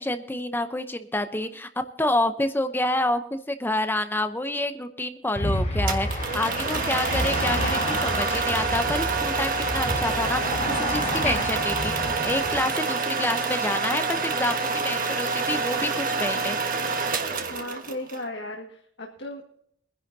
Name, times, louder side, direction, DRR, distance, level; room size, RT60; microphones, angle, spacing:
voice 1, 0.0-1.7 2.0-11.9 12.2-16.6, left 1 dB, 10° left, 8 dB, 0.7 m, -28 dB
sound 1, 5.4-12.6, left 1 dB, 35° left, 3.7 m, -29 dB
sound 2, 5.9-18.2, right 4 dB, 45° right, 1.4 m, -27 dB
voice 2, 17.5-19.6, left 1 dB, 65° left, 1 dB, 1.9 m, -36 dB
23.0 x 11.0 x 2.7 m, 0.67 s
head